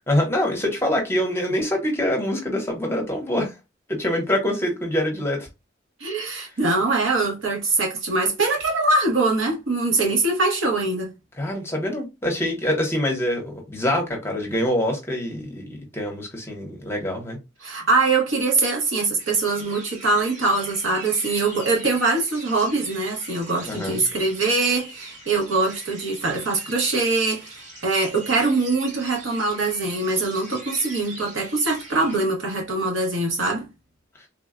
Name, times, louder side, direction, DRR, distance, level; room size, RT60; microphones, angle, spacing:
voice 1, 0.1-3.5 3.9-5.5 11.4-17.4 23.7-24.0, left 1 dB, 15° left, 0.8 m, -25 dB
voice 2, 6.0-11.1 17.6-33.7, right 3 dB, 90° right, 1.1 m, -23 dB
sound 1, 19.2-32.2, right 2 dB, 40° right, 1.0 m, -42 dB
3.4 x 2.2 x 2.4 m
head